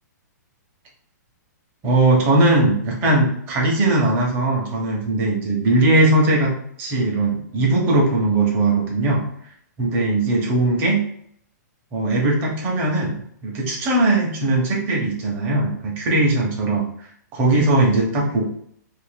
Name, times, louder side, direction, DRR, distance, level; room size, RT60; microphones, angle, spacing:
voice 1, 1.8-6.5 6.8-9.2 9.8-11.0 11.9-16.9 17.3-18.5, right 2 dB, 20° right, -2 dB, 0.8 m, -19 dB
2.6 x 2.5 x 3.9 m, 0.67 s
hypercardioid pair, 165°, 10 cm